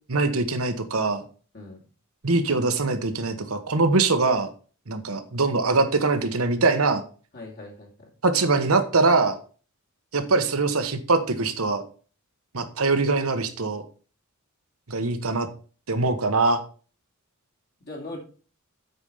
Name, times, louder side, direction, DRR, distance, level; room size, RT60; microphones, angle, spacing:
voice 1, 0.1-1.2 2.2-4.5 4.9-7.0 8.2-9.4 10.1-11.8 12.5-13.8 14.9-15.5 15.9-16.6, right 3 dB, 80° right, 9 dB, 1.2 m, -23 dB
voice 2, 7.3-8.1 17.8-18.2, left 2 dB, 50° left, -1 dB, 2.6 m, -39 dB
8.2 x 5.1 x 5.5 m, 0.39 s
head